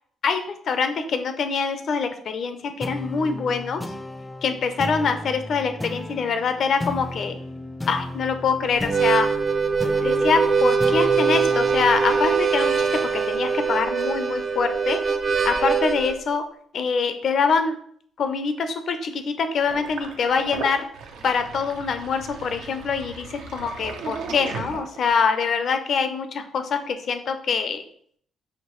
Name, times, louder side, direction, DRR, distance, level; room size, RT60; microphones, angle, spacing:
voice 1, 0.2-3.8 4.4-7.4 7.9-9.3 10.0-12.9 13.1-15.0 15.4-16.4 16.7-17.7 18.2-20.9 21.2-27.8, left 5 dB, 60° left, 8 dB, 0.6 m, -24 dB
sound 1, 2.8-13.6, left 1 dB, 10° left, 0.4 m, -35 dB
Harmonica, 8.8-16.2, right 5 dB, 45° right, 0.5 m, -22 dB
Sink (filling or washing), 19.7-25.3, right 5 dB, 90° right, 0.6 m, -36 dB
5.8 x 2.6 x 3.0 m, 0.62 s
cardioid pair, 90°, 0 cm